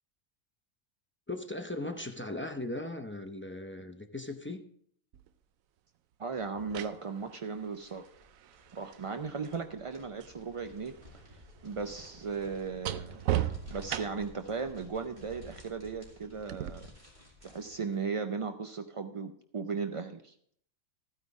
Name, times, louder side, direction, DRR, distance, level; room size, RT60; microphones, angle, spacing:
voice 1, 1.3-4.6, left 2 dB, 15° left, 0.4 m, -38 dB
sound 1, 5.1-5.3 6.4-10.4 10.7-14.4 16.5-16.7, right 12 dB, 85° right, 1.0 m, -38 dB
voice 2, 6.2-8.0 8.7-11.0 11.3-13.2 13.7-16.9 17.4-20.3, right 5 dB, 60° right, 0.3 m, -37 dB
sound 2, 7.4-18.1, left 1 dB, 35° right, 2.6 m, -54 dB
14.0 x 9.4 x 3.6 m
omnidirectional pair, 1.4 m